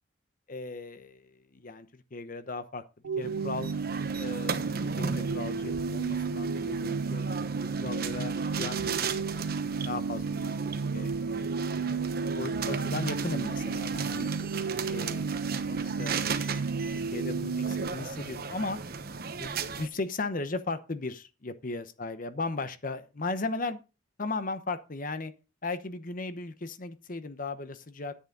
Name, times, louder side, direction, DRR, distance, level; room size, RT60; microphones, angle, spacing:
voice 1, 0.5-2.8 3.2-3.7 4.2-7.2 7.8-9.3 9.8-11.7 12.3-14.3 14.9-16.2 16.9-18.8 19.4-23.8 24.2-25.3 25.6-28.1, left 3 dB, 45° left, 0.9 m, -37 dB
sound 1, 3.0-17.9, right 5 dB, 80° right, 0.5 m, -32 dB
sound 2, 3.2-19.9, right 5 dB, 50° right, 1.0 m, -37 dB
sound 3, 8.7-14.6, equal, 15° left, 2.1 m, -55 dB
10.0 x 8.5 x 3.9 m
head